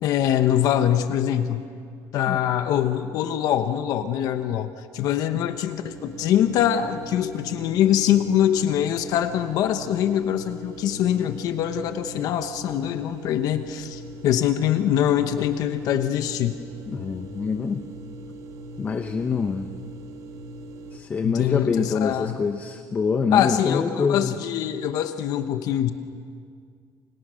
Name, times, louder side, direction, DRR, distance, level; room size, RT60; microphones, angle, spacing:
voice 1, 0.0-1.6 2.1-16.6 21.2-22.4 23.3-25.9, left 10 dB, 55° left, 9 dB, 1.1 m, -23 dB
sound 1, 5.8-21.0, right 1 dB, 50° right, 2.3 m, -40 dB
voice 2, 16.9-17.9 18.8-19.7 20.9-24.3, left 5 dB, 20° left, 8 dB, 0.8 m, -25 dB
29.5 x 28.0 x 6.4 m, 2.3 s
cardioid pair, 170°, 7 cm